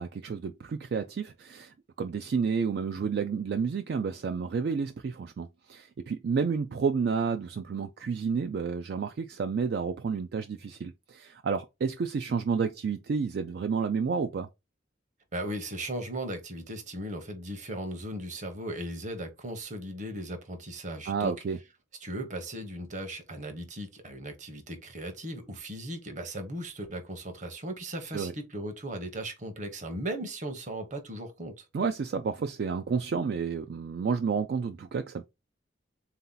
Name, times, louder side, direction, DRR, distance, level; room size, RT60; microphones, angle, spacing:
voice 1, 0.0-14.5 21.1-21.6 28.1-28.3 31.7-35.3, right 5 dB, 55° right, 0.3 m, -30 dB
voice 2, 15.3-21.3 22.0-31.7, right 1 dB, 40° right, 0.9 m, -37 dB
3.9 x 2.8 x 3.8 m
head